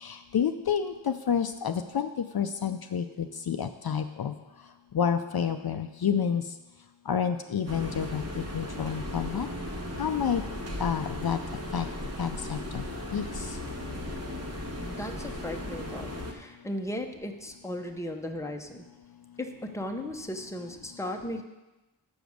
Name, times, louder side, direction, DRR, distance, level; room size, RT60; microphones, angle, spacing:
voice 1, 0.0-2.1 2.3-4.3 4.9-6.4 7.1-9.5 10.0-10.4 10.8-11.4 11.7-11.9 12.2-12.8 13.1-13.3, left 7 dB, 60° left, 8 dB, 0.5 m, -29 dB
sound 1, 7.7-16.3, left 1 dB, 35° right, 1.2 m, -36 dB
voice 2, 14.8-18.9 19.4-21.4, left 1 dB, 5° left, 4 dB, 0.8 m, -36 dB
7.1 x 5.1 x 6.4 m, 1.0 s
wide cardioid pair, 50°, 42 cm